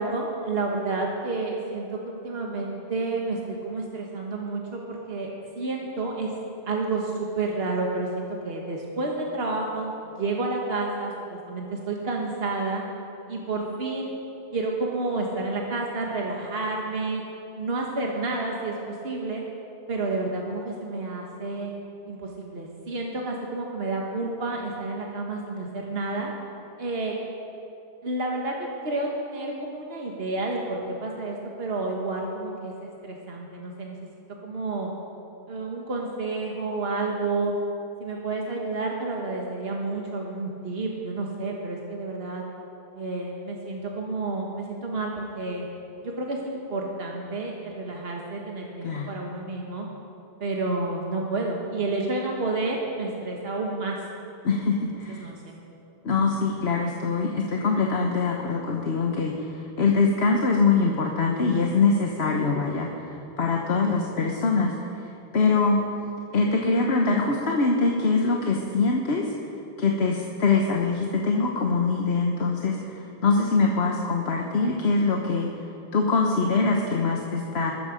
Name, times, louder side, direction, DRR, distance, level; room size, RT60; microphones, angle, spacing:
voice 1, 0.0-5.3 5.6-6.3 6.7-12.8 13.3-14.1 14.5-17.2 17.6-19.4 19.9-21.7 22.1-26.3 26.8-27.1 28.0-34.0 34.4-34.9 35.5-37.5 38.0-42.5 42.9-45.7 46.0-49.9 50.4-54.0 55.1-55.6 62.5-62.6, right 3 dB, 75° right, -1 dB, 1.7 m, -30 dB
voice 2, 54.4-55.3 56.0-64.7 65.0-65.8 66.3-69.3 69.8-75.5 75.9-77.7, left 4 dB, 90° left, 1 dB, 1.4 m, -23 dB
21.5 x 13.0 x 5.1 m, 2.9 s
omnidirectional pair, 1.0 m